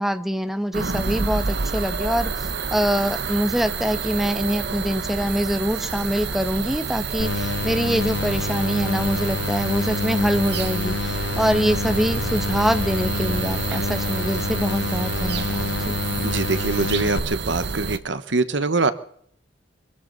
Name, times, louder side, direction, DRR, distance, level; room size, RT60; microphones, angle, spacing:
voice 1, 0.0-16.0, equal, ahead, 9 dB, 1.1 m, -24 dB
sound 1, 0.7-18.0, right 5 dB, 65° right, 0.9 m, -28 dB
sound 2, 7.2-17.2, left 4 dB, 75° left, 0.9 m, -28 dB
voice 2, 16.2-18.9, right 3 dB, 80° right, 13 dB, 1.2 m, -23 dB
25.0 x 13.5 x 4.1 m, 0.64 s
head